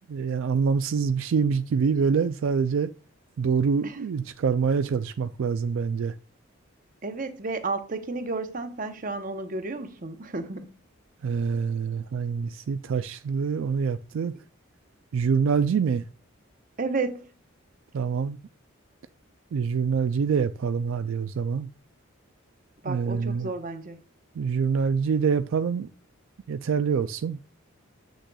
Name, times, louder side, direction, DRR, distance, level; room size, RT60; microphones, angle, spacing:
voice 1, 0.1-2.9 3.4-6.1 11.2-14.3 15.1-16.0 17.9-18.4 19.5-21.7 22.9-23.5 24.4-25.9 26.5-27.4, right 6 dB, 70° right, 0.3 m, -25 dB
voice 2, 7.0-10.7 16.8-17.3 22.8-24.0, right 3 dB, 40° right, 0.8 m, -32 dB
8.0 x 6.3 x 2.3 m
head